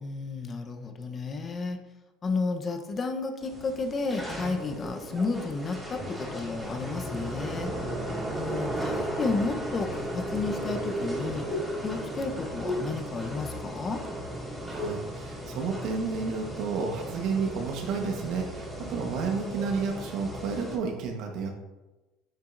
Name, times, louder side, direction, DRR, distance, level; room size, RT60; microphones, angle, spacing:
voice 1, 0.0-1.8 2.2-7.7 8.4-14.0, left 4 dB, 35° left, 5 dB, 0.9 m, -32 dB
sound 1, 3.4-20.7, right 1 dB, 5° right, 2.3 m, -36 dB
sound 2, 5.1-7.3 8.0-8.9 9.9-14.0 14.2-15.1 15.4-16.3 16.6-19.8, left 2 dB, 30° right, 2.1 m, -41 dB
voice 2, 14.6-21.5, right 5 dB, 65° right, 3 dB, 1.3 m, -31 dB
8.8 x 5.5 x 2.6 m, 1.1 s
supercardioid pair, 90°, 0 cm